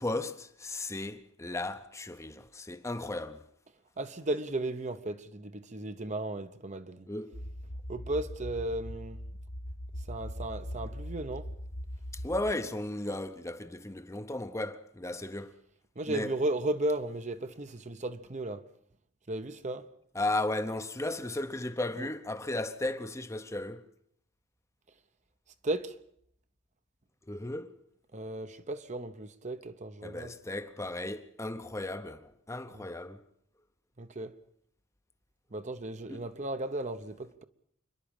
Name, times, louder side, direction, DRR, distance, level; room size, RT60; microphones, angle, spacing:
voice 1, 0.0-3.5 7.1-7.4 12.1-15.6 16.1-16.3 20.1-23.9 27.3-27.8 30.0-33.2 36.1-36.3, left 2 dB, 15° left, 0.8 m, -35 dB
voice 2, 4.0-7.1 7.9-9.2 10.1-11.5 16.0-18.7 19.3-19.9 22.0-22.1 25.6-26.0 28.1-30.3 32.7-32.9 34.0-34.3 35.5-37.4, right 1 dB, 35° right, 0.9 m, -35 dB
sound 1, 7.3-12.5, equal, 65° left, 1.7 m, -40 dB
27.5 x 11.5 x 8.9 m
head